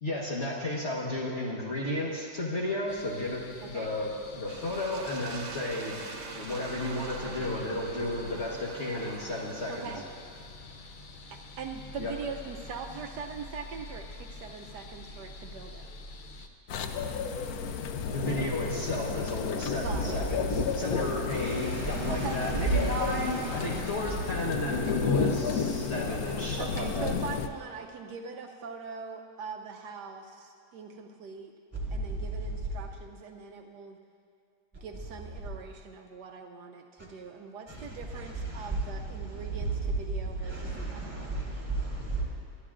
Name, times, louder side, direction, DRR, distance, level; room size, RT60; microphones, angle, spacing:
voice 1, 0.0-6.0 6.3-9.9 12.0-12.1 18.1-27.1, left 1 dB, 40° left, -4 dB, 1.5 m, -33 dB
sound 1, 2.9-16.5, left 2 dB, 90° left, 0.4 m, -47 dB
sound 2, 4.5-10.5, right 4 dB, 50° right, 1.1 m, -44 dB
voice 2, 9.7-10.0 11.3-15.9 19.8-20.2 22.1-22.4 26.6-31.5 31.9-34.0 34.7-41.4, right 5 dB, 75° right, 4 dB, 1.2 m, -42 dB
sound 3, 16.7-27.5, left 6 dB, 65° left, 1.0 m, -32 dB
voice 3, 21.3-25.3 31.7-32.8 37.0-37.1 37.7-42.2, right 3 dB, 5° right, -7 dB, 3.6 m, -34 dB
22.0 x 13.0 x 2.5 m, 2.3 s
omnidirectional pair, 1.9 m